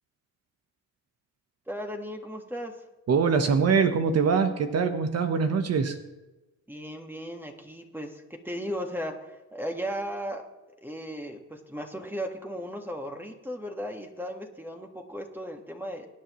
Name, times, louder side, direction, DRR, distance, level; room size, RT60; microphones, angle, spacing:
voice 1, 1.7-2.7 6.7-10.4 10.8-16.1, equal, 5° right, 3 dB, 1.7 m, -36 dB
voice 2, 3.1-6.0, right 5 dB, 55° right, 8 dB, 1.2 m, -23 dB
23.5 x 9.6 x 3.1 m, 1.1 s
cardioid pair, 90°, 30 cm